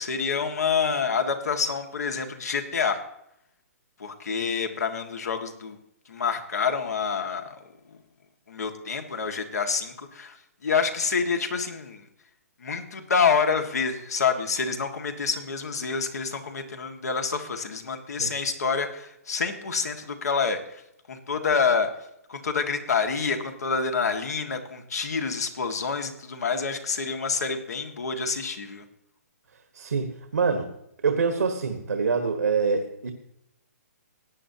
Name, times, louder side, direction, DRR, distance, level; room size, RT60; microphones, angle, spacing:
voice 1, 0.0-3.0 4.0-5.8 6.1-7.5 8.5-10.4 10.6-12.0 12.6-20.8 21.1-21.9 22.3-28.8, left 5 dB, 75° left, 1.8 m, -27 dB
voice 2, 29.7-30.7 31.0-33.1, right 5 dB, 85° right, 1.4 m, -25 dB
17.5 x 9.5 x 2.8 m
hypercardioid pair, 145°, 9 cm